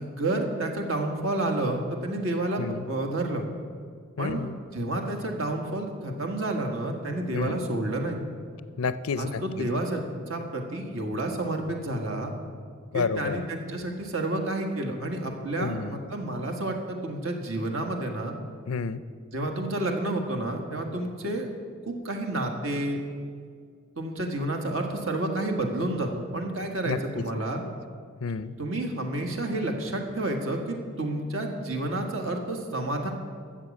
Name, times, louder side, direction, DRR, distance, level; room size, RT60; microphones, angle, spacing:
voice 1, 0.0-3.4 4.2-4.5 4.7-8.2 9.2-12.3 12.9-18.3 19.3-21.5 21.9-23.0 23.9-27.6 28.6-33.1, right 1 dB, 70° right, 3 dB, 1.6 m, -30 dB
voice 2, 4.2-4.6 7.3-7.6 8.8-9.7 12.9-13.4 15.6-16.0 18.7-19.0 26.9-27.4 28.2-28.5, left 5 dB, 90° left, 14 dB, 0.5 m, -30 dB
13.0 x 7.6 x 7.2 m, 2.1 s
head